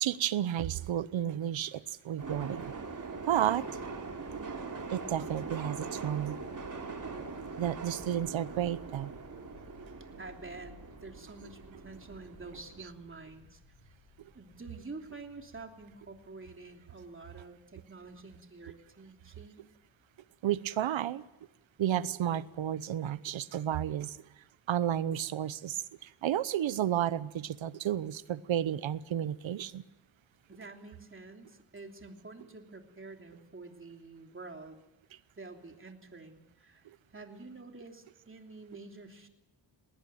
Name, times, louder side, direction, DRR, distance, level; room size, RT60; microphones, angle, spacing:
voice 1, 0.0-2.7 3.2-3.7 4.9-6.4 7.6-9.1 20.4-21.2 21.8-24.1 24.7-25.8 26.2-29.8, right 11 dB, 80° right, 17 dB, 1.0 m, -32 dB
sound 1, 2.2-12.8, right 4 dB, 40° right, 3.3 m, -42 dB
sound 2, 6.5-20.5, left 4 dB, 70° left, 3.9 m, -60 dB
voice 2, 10.2-10.7 11.0-13.6 14.3-19.6 30.5-34.8 35.3-36.9 37.1-39.3, right 3 dB, 25° right, 3 dB, 3.1 m, -48 dB
19.5 x 19.0 x 9.0 m, 0.97 s
cardioid pair, 85°, 46 cm